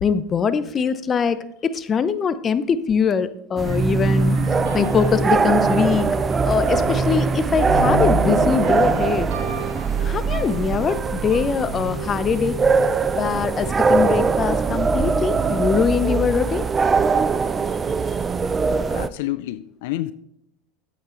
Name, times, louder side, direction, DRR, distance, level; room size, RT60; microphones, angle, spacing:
voice 1, 0.0-1.4 1.7-4.4 4.7-6.1 6.5-9.3 10.0-12.6 13.1-16.6, left 6 dB, 30° left, 0.7 m, -22 dB
sound 1, 3.6-19.1, right 5 dB, 25° right, 0.5 m, -22 dB
sound 2, 3.7-13.5, right 1 dB, 75° right, 3.0 m, -28 dB
voice 2, 18.9-20.1, left 16 dB, 70° left, 0.4 m, -28 dB
8.7 x 8.1 x 3.8 m
hypercardioid pair, 100°, 0 cm